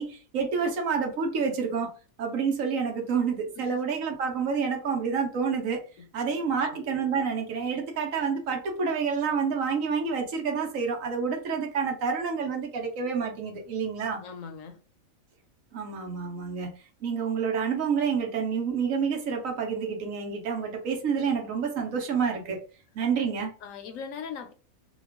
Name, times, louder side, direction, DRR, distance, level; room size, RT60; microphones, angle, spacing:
voice 1, 0.0-1.9 2.2-5.8 6.1-14.2 15.7-22.6 22.9-23.5, right 6 dB, 75° right, 1.2 m, -28 dB
voice 2, 6.0-6.7 14.2-14.8 23.6-24.5, left 6 dB, 75° left, 1.0 m, -40 dB
2.9 x 2.3 x 3.4 m
omnidirectional pair, 1.4 m